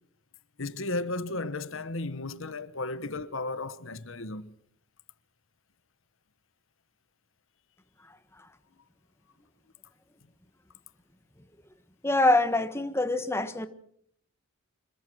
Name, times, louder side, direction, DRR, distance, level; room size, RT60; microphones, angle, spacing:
voice 1, 0.6-4.5, left 2 dB, 65° left, 1.2 m, -34 dB
voice 2, 12.0-13.7, left 2 dB, 10° left, 1.4 m, -24 dB
26.0 x 22.5 x 6.2 m
head